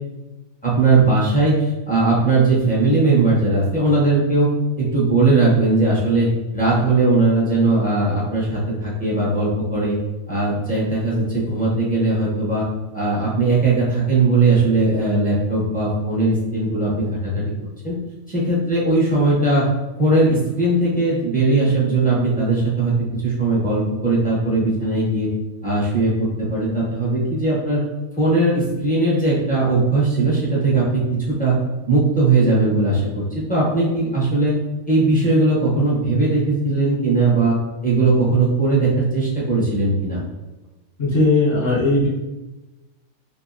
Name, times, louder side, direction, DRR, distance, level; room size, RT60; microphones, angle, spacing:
voice 1, 0.6-4.5 4.8-6.3 6.5-10.0 10.3-12.7 12.9-17.5 17.8-18.0 18.3-19.7 20.0-22.9 23.2-25.3 25.6-27.8 28.2-31.0 31.3-31.6 31.9-34.5 34.9-37.6 37.8-40.2, right 3 dB, 10° left, -7 dB, 0.4 m, -19 dB
voice 2, 41.0-42.1, left 2 dB, 50° left, -6 dB, 0.9 m, -17 dB
2.7 x 2.5 x 2.5 m, 1.1 s
omnidirectional pair, 1.5 m